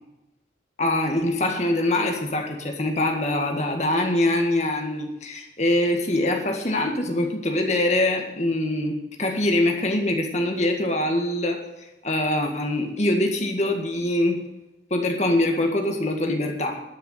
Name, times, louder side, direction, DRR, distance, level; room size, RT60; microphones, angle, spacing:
voice 1, 0.8-11.6 12.0-14.4 14.9-16.8, left 1 dB, 40° left, 3 dB, 1.9 m, -23 dB
12.0 x 6.9 x 9.6 m, 0.97 s
head